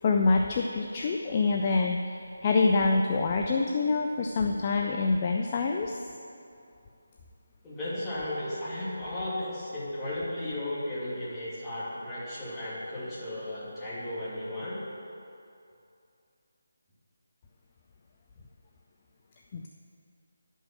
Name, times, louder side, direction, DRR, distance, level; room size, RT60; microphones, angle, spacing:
voice 1, 0.0-6.0 19.5-19.7, left 3 dB, 30° left, 2 dB, 0.5 m, -26 dB
voice 2, 7.6-14.8, left 1 dB, 10° left, -10 dB, 2.6 m, -35 dB
11.0 x 5.5 x 6.0 m, 2.6 s
figure-of-eight pair, 160°, 0 cm